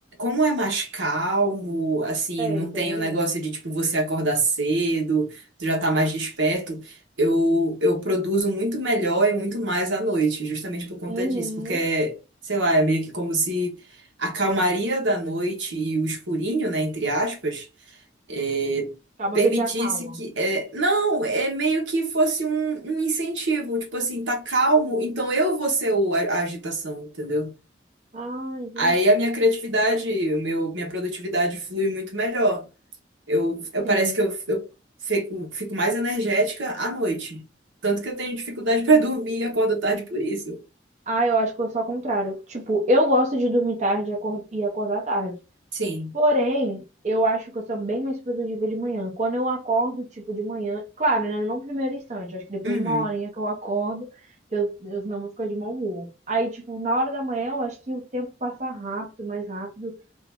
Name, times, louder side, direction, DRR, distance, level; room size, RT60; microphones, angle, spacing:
voice 1, 0.2-12.2 12.4-13.8 14.2-17.7 18.3-18.9 19.3-27.5 28.8-32.7 33.3-34.7 35.0-37.4 37.8-40.6 45.7-46.1 52.6-53.1, right 1 dB, 85° right, 1.2 m, -24 dB
voice 2, 2.4-3.3 11.1-11.8 19.2-20.2 28.1-29.1 33.8-34.1 41.1-45.4 46.1-54.1 54.5-60.0, right 1 dB, 40° right, 0.7 m, -26 dB
2.8 x 2.6 x 3.4 m
head